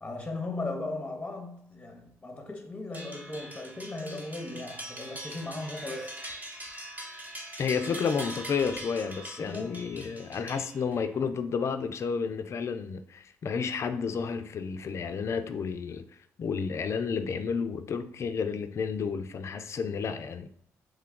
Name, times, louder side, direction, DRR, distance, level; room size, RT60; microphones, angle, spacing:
voice 1, 0.0-6.2 9.4-9.9, left 2 dB, 20° left, 0.7 m, -37 dB
sound 1, 2.9-11.1, right 1 dB, 25° right, 0.9 m, -42 dB
voice 2, 7.6-16.0 16.4-20.5, left 6 dB, 50° left, 0.4 m, -31 dB
3.1 x 2.3 x 3.7 m
supercardioid pair, 60°, 6 cm